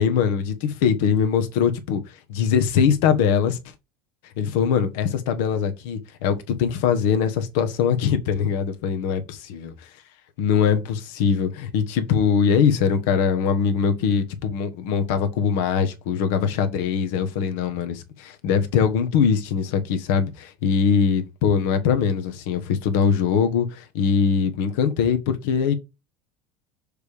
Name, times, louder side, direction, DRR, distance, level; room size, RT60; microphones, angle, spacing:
voice 1, 0.0-2.0 2.3-3.6 4.4-9.9 10.4-25.7, left 7 dB, 75° left, 1.0 m, -22 dB
6.5 x 3.4 x 4.9 m
hypercardioid pair, 85°, 0 cm